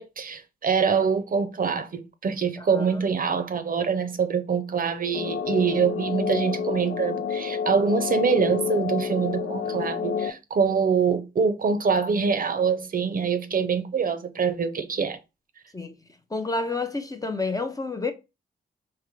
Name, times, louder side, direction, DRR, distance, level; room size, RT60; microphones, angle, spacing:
voice 1, 0.0-15.2, right 6 dB, 50° right, 0.6 m, -25 dB
voice 2, 2.6-2.9 15.7-15.9 16.3-18.1, left 3 dB, 20° left, 0.6 m, -29 dB
sound 1, 5.1-10.3, left 6 dB, 75° left, 0.6 m, -29 dB
3.7 x 2.9 x 3.1 m
cardioid pair, 60°, 19 cm